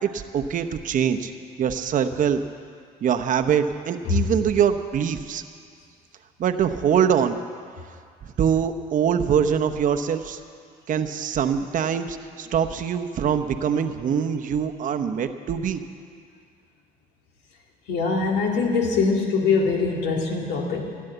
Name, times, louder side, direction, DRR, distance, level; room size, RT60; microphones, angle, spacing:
voice 1, 0.0-1.3 1.6-2.4 3.0-5.4 6.4-7.4 8.2-10.4 10.9-15.8, right 8 dB, 50° right, 7 dB, 0.9 m, -23 dB
voice 2, 17.9-20.8, left 4 dB, 85° left, 1 dB, 2.2 m, -23 dB
16.0 x 9.7 x 7.9 m, 2.2 s
cardioid pair, 110°, 17 cm